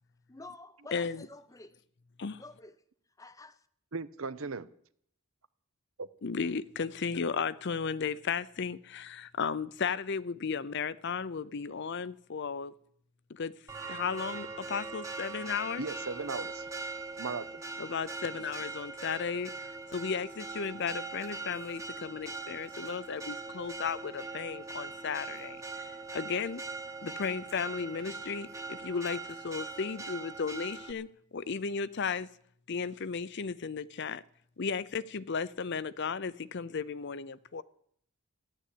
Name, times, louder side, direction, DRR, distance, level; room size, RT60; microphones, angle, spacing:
voice 1, 0.3-1.8 2.4-2.8 3.2-3.7, left 2 dB, 15° left, 0.7 m, -49 dB
voice 2, 0.9-1.3 2.2-2.4 6.2-12.7 13.3-13.5 13.9-15.9 17.8-26.6 27.0-32.3 32.7-34.2 34.6-37.6, left 5 dB, 50° left, 0.6 m, -35 dB
voice 3, 3.9-4.7 6.0-6.1 15.8-16.7 17.2-17.6 28.9-29.0, right 4 dB, 65° right, 0.8 m, -37 dB
Church bell, 13.7-30.9, right 3 dB, 15° right, 1.1 m, -41 dB
14.0 x 11.5 x 8.5 m
head